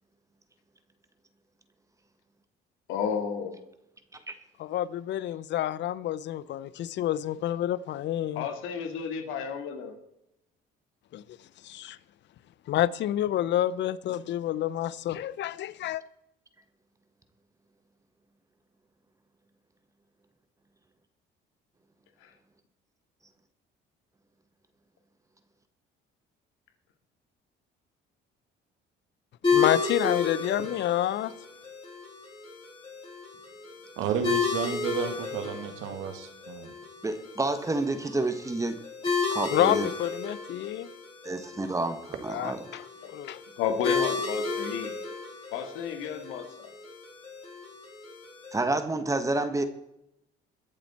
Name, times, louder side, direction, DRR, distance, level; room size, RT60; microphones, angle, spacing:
voice 1, 2.9-3.5 8.4-10.0 22.2-22.3 43.6-44.9 45.5-46.7, left 7 dB, 90° left, 2.2 m, -32 dB
voice 2, 4.6-8.5 11.1-11.4 11.6-12.0 12.7-16.0 29.5-31.3 39.5-40.9 42.3-43.4, left 12 dB, 60° left, 0.7 m, -29 dB
sound 1, 29.4-48.6, left 5 dB, 25° left, 6.3 m, -33 dB
voice 3, 34.0-36.7, right 6 dB, 85° right, 2.1 m, -32 dB
voice 4, 37.0-38.8 39.1-39.9 41.2-42.6 48.5-49.6, right 2 dB, 15° right, 1.3 m, -29 dB
22.0 x 7.4 x 4.3 m
cardioid pair, 110°, 20 cm